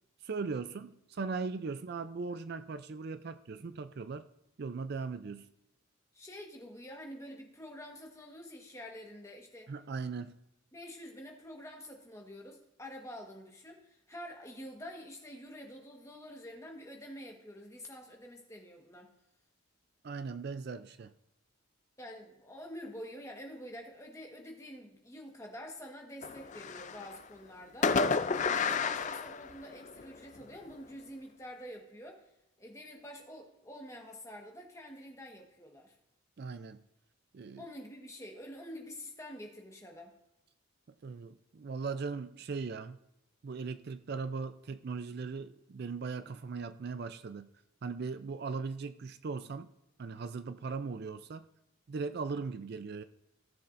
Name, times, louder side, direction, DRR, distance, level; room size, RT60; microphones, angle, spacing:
voice 1, 0.2-4.3 4.6-5.5 9.7-10.4 20.0-21.1 36.4-36.8 37.3-37.7 41.0-43.0 43.4-47.5 47.8-49.7 50.0-51.5 51.9-53.0, right 4 dB, 50° right, 11 dB, 0.4 m, -39 dB
voice 2, 6.1-9.7 10.7-19.1 22.0-32.3 32.6-35.9 37.6-40.1, equal, 15° left, 1 dB, 1.3 m, -47 dB
Fireworks, 26.2-27.2 27.8-30.0, left 5 dB, 35° left, 0.4 m, -31 dB
16.5 x 7.1 x 2.6 m, 0.89 s
head